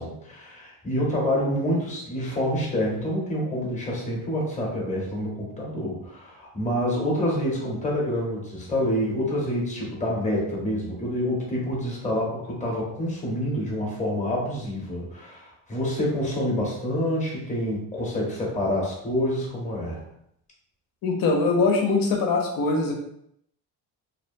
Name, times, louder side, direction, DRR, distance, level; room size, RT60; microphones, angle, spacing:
voice 1, 0.0-20.0, equal, 20° left, -3 dB, 0.8 m, -27 dB
voice 2, 21.0-22.9, left 3 dB, 60° left, 2 dB, 0.7 m, -22 dB
2.7 x 2.0 x 2.6 m, 0.74 s
cardioid pair, 135°, 39 cm